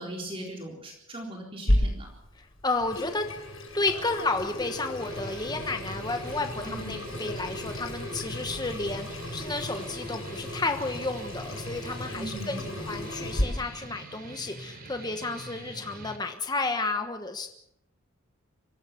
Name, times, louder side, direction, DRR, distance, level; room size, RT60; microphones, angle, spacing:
voice 1, 0.0-2.1 6.7-6.9 12.1-12.7, right 1 dB, 25° right, 0 dB, 4.0 m, -39 dB
Water tap faucet / Sink (filling or washing), 1.7-13.4, left 1 dB, 70° left, 7.7 m, -33 dB
voice 2, 2.4-3.3 3.7-17.5, left 3 dB, 20° left, 6 dB, 1.2 m, -32 dB
sound 1, 5.0-16.2, right 2 dB, 45° right, 3.4 m, -45 dB
24.5 x 16.5 x 7.0 m, 0.76 s
head